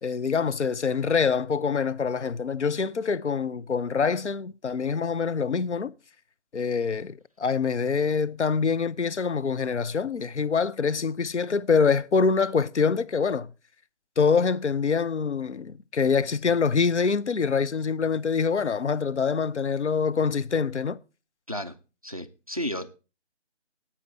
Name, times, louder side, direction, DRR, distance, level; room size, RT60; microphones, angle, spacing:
voice 1, 0.0-5.9 6.5-13.5 14.2-21.0, left 5 dB, 75° left, 0.7 m, -25 dB
voice 2, 22.0-22.9, equal, 30° right, 0.5 m, -32 dB
9.8 x 8.7 x 4.2 m
figure-of-eight pair, 160°, 35 cm